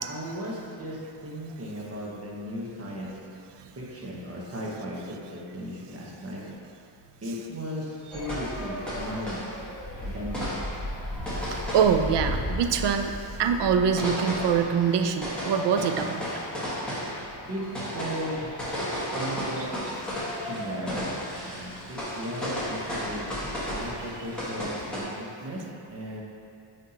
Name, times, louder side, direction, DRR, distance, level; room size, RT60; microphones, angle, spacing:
voice 1, 0.0-3.2 3.8-6.4 7.2-9.5 10.0-10.6 17.5-17.6 17.9-18.5 19.1-19.7 20.4-21.1 21.4-23.2 23.8-25.6 25.9-26.2, equal, 30° right, -4 dB, 1.0 m, -36 dB
sound 1, 8.1-25.0, equal, ahead, 1.5 m, -33 dB
voice 2, 11.7-16.2, right 7 dB, 65° right, 7 dB, 0.5 m, -24 dB
9.4 x 3.6 x 2.9 m, 2.4 s
wide cardioid pair, 150°, 45 cm